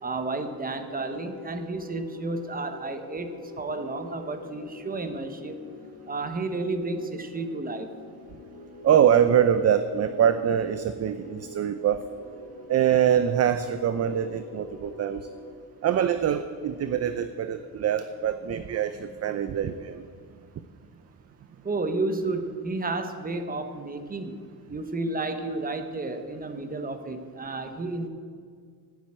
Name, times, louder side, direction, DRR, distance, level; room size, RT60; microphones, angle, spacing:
voice 1, 0.0-5.6 6.1-7.9 21.6-24.4 24.7-28.1, right 3 dB, 20° right, 8 dB, 1.1 m, -31 dB
sound 1, 0.6-15.5, left 3 dB, 60° left, 2.0 m, -45 dB
voice 2, 8.8-12.0 12.7-15.3 15.8-20.0, right 9 dB, 40° right, 11 dB, 0.5 m, -24 dB
12.0 x 9.2 x 8.7 m, 2.1 s
cardioid pair, 150°, 38 cm